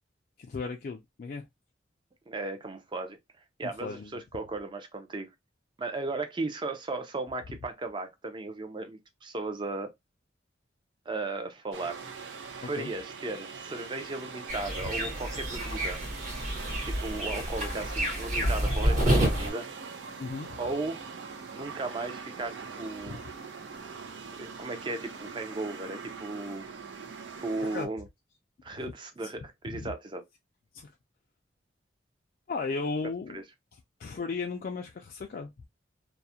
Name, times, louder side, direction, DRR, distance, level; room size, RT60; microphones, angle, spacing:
voice 1, 0.4-1.5 3.6-4.1 12.6-12.9 20.2-20.6 23.1-23.2 27.6-27.9 28.7-28.9 29.7-29.9 30.7-30.9 32.5-33.4 34.0-35.7, left 4 dB, 50° left, 0.3 m, -36 dB
voice 2, 2.3-3.2 3.6-5.3 5.8-9.9 11.1-12.0 12.5-16.0 16.8-19.7 20.6-21.0 21.5-23.2 24.3-26.7 27.4-28.0 28.6-30.2 33.3-33.4, right 2 dB, 25° right, 0.4 m, -36 dB
sound 1, 11.7-27.9, right 5 dB, 85° right, 0.5 m, -42 dB
sound 2, 14.5-19.5, equal, 40° right, 1.0 m, -29 dB
2.3 x 2.0 x 2.7 m
head